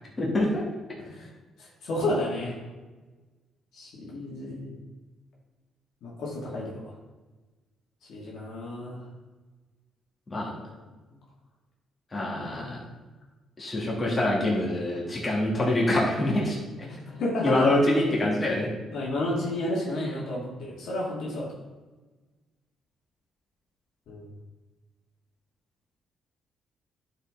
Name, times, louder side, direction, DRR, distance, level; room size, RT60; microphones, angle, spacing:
voice 1, 0.2-0.7 10.3-10.5 12.1-12.8 13.6-16.6 17.4-18.7, left 1 dB, 30° left, -5 dB, 2.8 m, -25 dB
voice 2, 1.0-1.3 1.6-2.6 3.7-4.7 6.0-6.9 8.1-9.1 10.4-10.8 12.2-12.8 16.8-17.8 18.9-21.6 24.1-24.3, left 1 dB, 75° left, -4 dB, 2.3 m, -32 dB
11.0 x 5.0 x 3.8 m, 1.2 s
cardioid pair, 90°, 0 cm